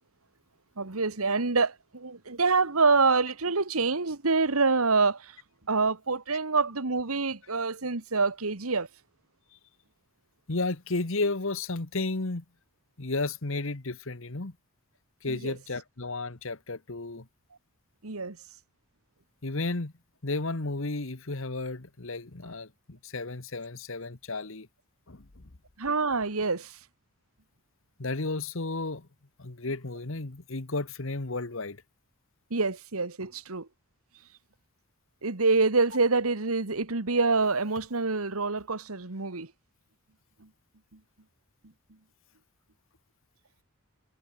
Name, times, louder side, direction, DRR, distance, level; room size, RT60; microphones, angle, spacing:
voice 1, 0.8-5.4 5.7-8.9 15.3-15.5 18.0-18.4 25.8-26.8 32.5-33.7 35.2-39.5 40.4-40.5, right 4 dB, 85° right, 1.7 m, -26 dB
voice 2, 10.5-12.4 13.0-14.5 15.2-17.3 19.4-19.9 20.2-24.7 25.1-25.4 28.0-29.1 29.4-31.8, left 3 dB, 65° left, 1.4 m, -33 dB
head